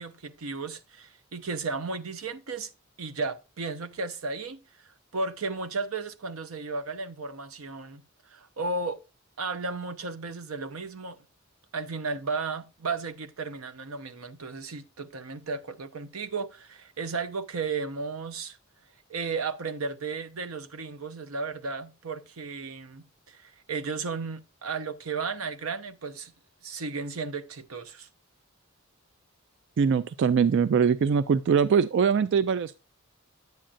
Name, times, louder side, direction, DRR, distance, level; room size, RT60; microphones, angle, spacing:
voice 1, 0.0-2.7 3.0-4.6 5.1-8.0 8.3-9.0 9.4-11.2 11.7-18.6 19.1-26.3 26.6-28.1, right 4 dB, 90° right, 0.8 m, -34 dB
voice 2, 29.8-32.8, right 6 dB, 60° right, 0.3 m, -22 dB
9.4 x 8.8 x 2.5 m
head